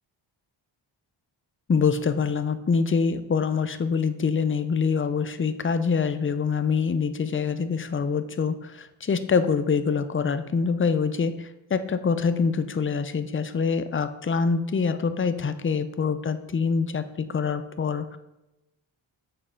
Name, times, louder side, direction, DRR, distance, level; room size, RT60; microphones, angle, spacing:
voice 1, 1.7-18.2, left 5 dB, 25° left, 11 dB, 0.6 m, -25 dB
6.8 x 4.2 x 5.1 m, 0.96 s
cardioid pair, 55°, 47 cm